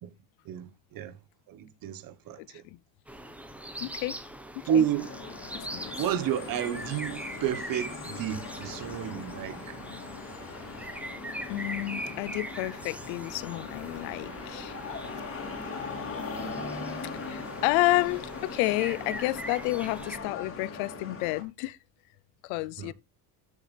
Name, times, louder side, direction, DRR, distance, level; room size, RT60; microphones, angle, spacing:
voice 1, 0.5-1.1 1.5-2.4 4.7-5.1 5.9-9.6 22.8-22.9, right 9 dB, 45° right, 1.3 m, -30 dB
voice 2, 2.4-2.8 3.8-4.2 4.5-4.9 5.7-5.9 11.5-14.8 17.3-21.8 22.4-22.9, left 20 dB, 85° left, 0.7 m, -30 dB
sound 1, 3.1-20.2, right 1 dB, 5° right, 1.1 m, -42 dB
sound 2, 4.9-21.4, left 4 dB, 30° left, 2.9 m, -40 dB
13.0 x 7.3 x 3.4 m
cardioid pair, 150°, 46 cm